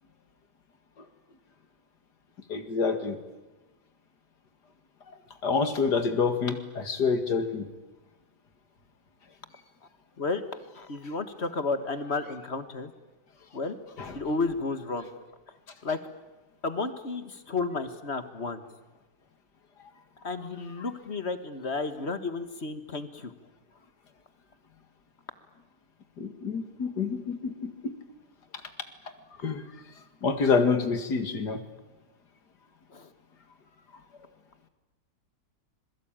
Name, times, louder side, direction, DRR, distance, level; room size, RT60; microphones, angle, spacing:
voice 1, 2.5-3.2 5.4-7.7 14.0-14.2 26.2-27.9 29.4-29.7 30.2-31.6, left 5 dB, 75° left, 8 dB, 2.6 m, -27 dB
voice 2, 10.8-12.9 13.5-13.8 14.1-15.1 15.8-16.0 16.6-18.6 20.2-23.3 32.9-33.1, left 3 dB, 40° left, 10 dB, 1.7 m, -32 dB
26.5 x 22.0 x 9.0 m, 1.1 s
omnidirectional pair, 1.8 m